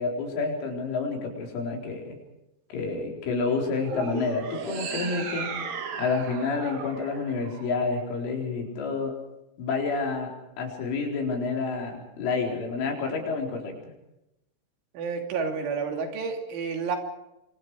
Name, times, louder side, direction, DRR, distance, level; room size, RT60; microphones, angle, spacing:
voice 1, 0.0-2.2 2.7-5.5 6.0-9.1 9.6-10.3 10.6-13.7, left 4 dB, 80° left, 1 dB, 6.9 m, -29 dB
sound 1, 3.8-8.2, right 5 dB, 50° right, 2.4 m, -36 dB
voice 2, 15.0-17.0, right 5 dB, 75° right, 3 dB, 5.3 m, -30 dB
27.0 x 25.0 x 4.9 m, 0.88 s
omnidirectional pair, 5.5 m